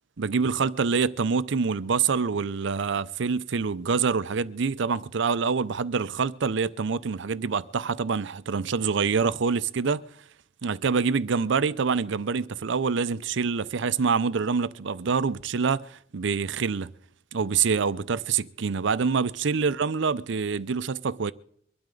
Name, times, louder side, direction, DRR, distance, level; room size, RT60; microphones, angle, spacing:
voice 1, 0.2-10.0 10.6-16.9 17.3-21.3, right 5 dB, 65° right, 0.6 m, -26 dB
23.5 x 12.5 x 3.9 m
head